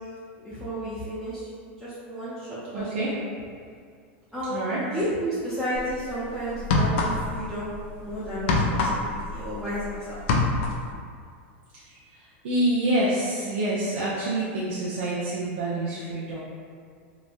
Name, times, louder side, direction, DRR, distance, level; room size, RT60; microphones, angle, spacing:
voice 1, 0.3-1.5 1.8-3.2 4.3-10.2, equal, 10° right, -14 dB, 0.7 m, -32 dB
voice 2, 2.7-3.1 4.5-4.8 11.7-16.4, right 1 dB, 75° right, -7 dB, 0.5 m, -27 dB
sound 1, 5.7-5.9 6.5-7.5 7.7-9.9 10.1-10.9, left 3 dB, 70° left, 0.4 m, -24 dB
3.0 x 2.2 x 2.5 m, 2.2 s
supercardioid pair, 125°, 7 cm